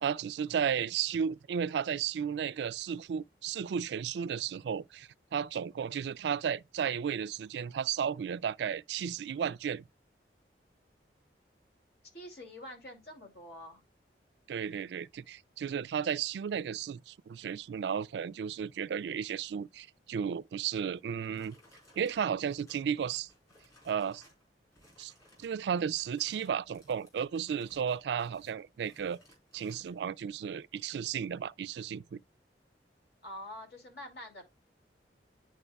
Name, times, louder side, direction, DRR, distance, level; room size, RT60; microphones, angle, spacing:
voice 1, 0.0-9.8 14.5-21.6 22.0-23.3 23.8-24.2 25.0-25.1 25.4-29.2 29.5-32.2, right 7 dB, 70° right, 0.3 m, -34 dB
voice 2, 12.1-13.8 33.2-34.4, left 1 dB, 60° left, 2.7 m, -46 dB
sound 1, 20.9-24.4 24.7-25.6 25.9-30.0, left 1 dB, 20° left, 4.2 m, -61 dB
11.0 x 4.7 x 2.3 m
head